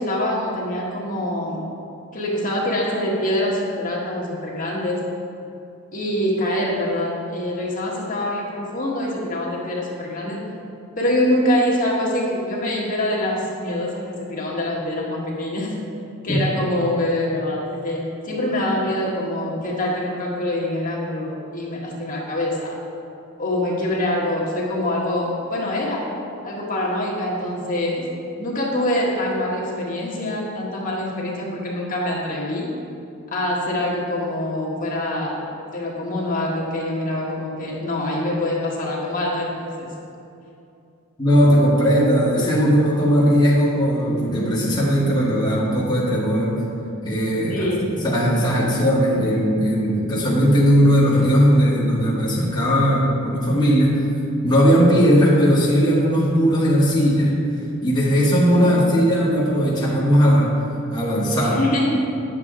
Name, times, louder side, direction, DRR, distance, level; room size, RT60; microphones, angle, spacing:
voice 1, 0.0-1.7 2.1-5.1 5.9-10.4 11.0-15.8 16.2-22.8 23.4-26.1 26.4-28.1 28.4-32.7 33.3-35.4 35.7-39.9 47.5-47.9 58.5-58.9 61.4-62.0, left 1 dB, 40° left, -4 dB, 1.4 m, -24 dB
voice 2, 41.2-46.6 47.0-47.7 48.0-54.0 54.4-57.3 57.8-60.5 60.9-61.6, equal, 20° left, -7 dB, 1.3 m, -18 dB
9.9 x 7.2 x 3.7 m, 2.7 s
head